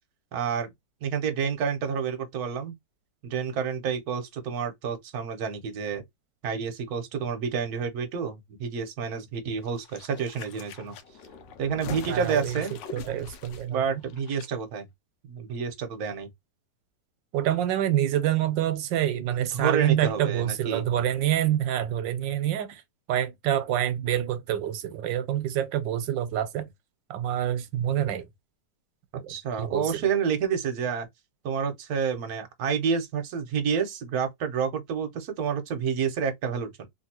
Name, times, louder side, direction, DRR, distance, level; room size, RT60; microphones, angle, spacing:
voice 1, 0.3-0.7 1.0-2.7 3.2-6.0 6.4-10.9 11.6-12.7 13.7-14.9 15.3-16.3 19.5-20.8 29.3-31.1 31.4-36.9, right 6 dB, 60° right, 1.2 m, -29 dB
sound 1, 9.6-14.5 14.7-14.8, left 6 dB, 85° left, 1.3 m, -43 dB
voice 2, 12.1-12.6 12.9-13.8 17.3-22.8 23.1-26.7 27.1-28.3 29.1-30.1, right 11 dB, 85° right, 1.3 m, -27 dB
3.1 x 2.7 x 2.8 m
omnidirectional pair, 1.9 m